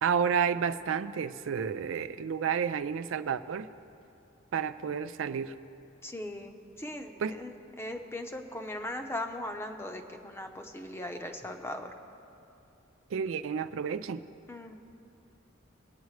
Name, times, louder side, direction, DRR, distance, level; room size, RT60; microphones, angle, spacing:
voice 1, 0.0-3.7 4.5-5.5 7.2-7.4 13.1-14.2, right 7 dB, 85° right, 11 dB, 0.4 m, -30 dB
voice 2, 6.0-7.5 7.8-11.9 14.5-14.7, left 1 dB, 15° left, 5 dB, 0.7 m, -39 dB
21.0 x 9.2 x 3.2 m, 2.8 s
head